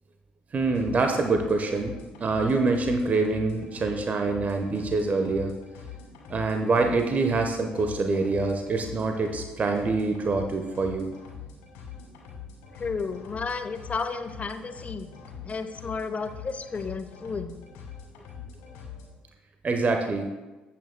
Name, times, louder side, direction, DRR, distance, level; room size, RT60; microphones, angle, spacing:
voice 1, 0.5-5.5 6.3-11.1 19.6-20.3, right 3 dB, 35° right, 5 dB, 1.0 m, -25 dB
sound 1, 0.6-19.1, left 6 dB, 70° left, 2.3 m, -43 dB
voice 2, 12.8-15.1 15.4-17.6, left 4 dB, 30° left, 9 dB, 0.9 m, -32 dB
14.0 x 8.7 x 2.2 m, 1.2 s
figure-of-eight pair, 50°, 4 cm